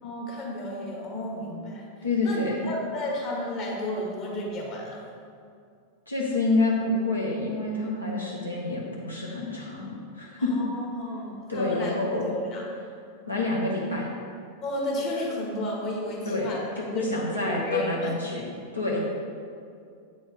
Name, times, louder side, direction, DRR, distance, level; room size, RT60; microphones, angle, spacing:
voice 1, 0.0-1.8 2.2-5.0 10.4-12.6 14.6-16.6 16.9-18.1, left 1 dB, 40° left, -2 dB, 1.6 m, -32 dB
voice 2, 2.0-2.6 6.1-10.5 11.5-12.2 13.3-14.1 16.2-16.5 16.8-18.4 18.7-19.0, left 2 dB, 80° left, -4 dB, 0.9 m, -28 dB
8.4 x 4.9 x 4.0 m, 2.3 s
figure-of-eight pair, 90°, 0 cm